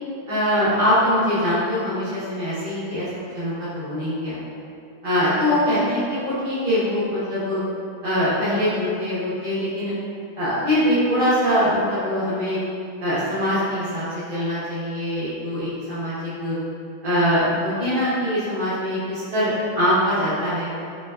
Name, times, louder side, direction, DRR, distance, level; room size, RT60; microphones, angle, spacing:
voice 1, 0.3-4.4 5.0-7.6 8.0-9.9 10.4-12.6 13.0-14.0 14.3-16.6 17.0-20.7, equal, 60° right, -12 dB, 0.5 m, -23 dB
3.3 x 3.2 x 2.3 m, 2.5 s
omnidirectional pair, 2.1 m